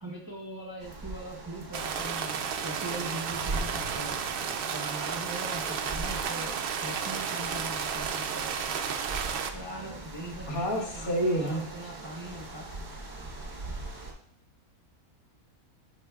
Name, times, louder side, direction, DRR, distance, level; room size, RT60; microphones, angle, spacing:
voice 1, 0.0-4.2 4.7-6.5 6.8-8.5 9.5-12.7, right 1 dB, 20° right, -2 dB, 0.6 m, -41 dB
sound 1, 0.8-14.1, right 2 dB, 35° right, 1.0 m, -41 dB
sound 2, 1.7-9.5, right 7 dB, 75° right, 0.5 m, -32 dB
voice 2, 10.5-11.6, right 1 dB, 70° left, 0 dB, 1.7 m, -28 dB
8.9 x 5.8 x 2.3 m, 0.69 s
omnidirectional pair, 1.5 m